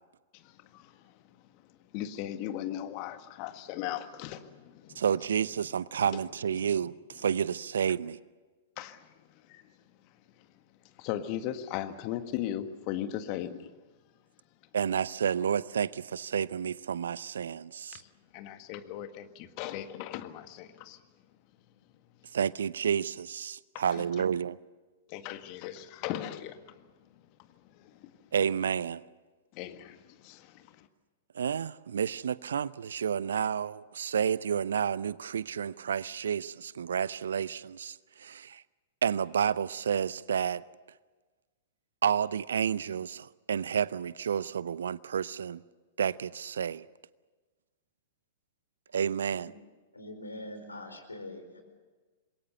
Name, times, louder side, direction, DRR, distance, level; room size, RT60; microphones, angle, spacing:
voice 1, 0.3-1.4 1.9-5.0 6.0-6.2 8.8-9.7 10.4-10.5 10.8-13.7 17.9-21.0 23.7-24.2 25.1-27.3 27.6-28.3 29.5-30.9, left 12 dB, 40° left, 1.7 m, -38 dB
voice 2, 5.0-8.2 14.7-18.0 22.3-24.6 28.3-29.0 31.3-38.6 39.0-40.6 42.0-45.6 46.0-46.8 48.9-49.5, right 8 dB, 65° right, 0.6 m, -30 dB
voice 3, 49.9-51.6, left 1 dB, 80° left, 4.6 m, -43 dB
27.0 x 22.0 x 6.8 m
figure-of-eight pair, 105°, 0 cm